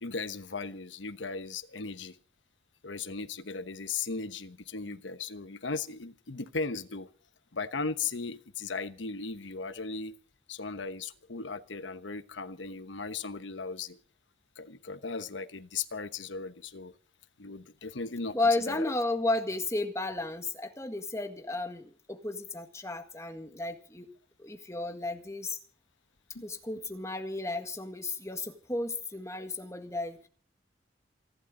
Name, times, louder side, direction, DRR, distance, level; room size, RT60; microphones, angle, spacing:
voice 1, 0.0-2.2 2.8-7.1 7.5-10.1 10.5-14.0 14.6-16.9 17.4-18.9 26.3-26.4, left 4 dB, 85° left, 12 dB, 1.1 m, -37 dB
voice 2, 18.3-24.1 24.4-25.6 26.4-30.2, left 2 dB, 15° left, 6 dB, 1.8 m, -33 dB
28.0 x 11.5 x 3.8 m, 0.43 s
head